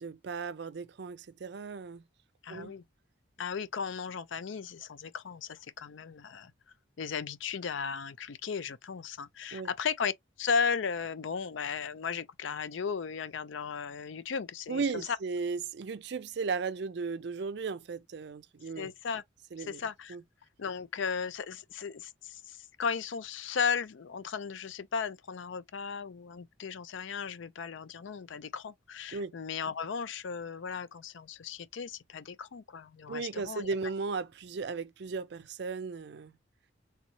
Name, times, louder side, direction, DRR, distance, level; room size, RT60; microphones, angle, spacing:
voice 1, 0.0-2.0 2.5-2.7 9.5-9.7 14.7-18.9 19.5-19.8 20.1-20.2 29.1-29.4 33.1-36.3, right 4 dB, 60° right, 0.4 m, -36 dB
voice 2, 2.4-2.8 3.4-6.5 7.0-10.1 10.4-15.1 18.8-19.2 19.6-20.2 20.6-33.7, left 6 dB, 70° left, 0.5 m, -35 dB
3.5 x 2.7 x 2.8 m
head